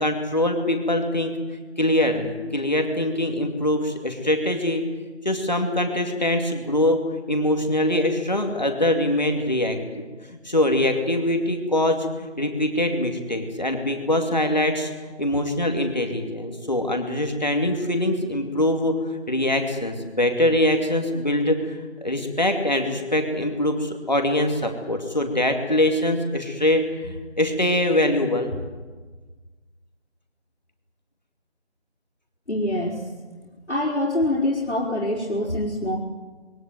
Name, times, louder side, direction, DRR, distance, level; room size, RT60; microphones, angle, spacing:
voice 1, 0.0-1.3 1.8-4.8 5.2-10.1 10.4-14.9 15.2-28.5, left 1 dB, 40° left, 4 dB, 2.6 m, -23 dB
voice 2, 32.5-33.0 33.7-36.0, left 1 dB, 80° left, -5 dB, 4.3 m, -25 dB
22.0 x 17.5 x 9.3 m, 1.4 s
figure-of-eight pair, 180°, 34 cm